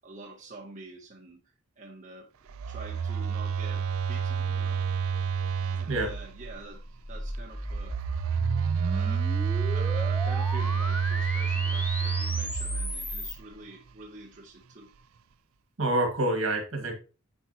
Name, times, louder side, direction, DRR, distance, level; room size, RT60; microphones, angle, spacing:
voice 1, 0.0-1.4 1.8-2.3 2.7-4.9 5.7-6.8 7.1-8.2 8.8-14.9, right 3 dB, 35° right, 0.8 m, -46 dB
Telephone, 2.5-6.5 7.7-13.4, right 6 dB, 80° right, 0.4 m, -29 dB
sound 1, 6.6-13.4, left 1 dB, 10° left, 0.7 m, -36 dB
voice 2, 15.8-16.9, right 1 dB, 65° right, 1.9 m, -27 dB
9.7 x 4.5 x 2.8 m
head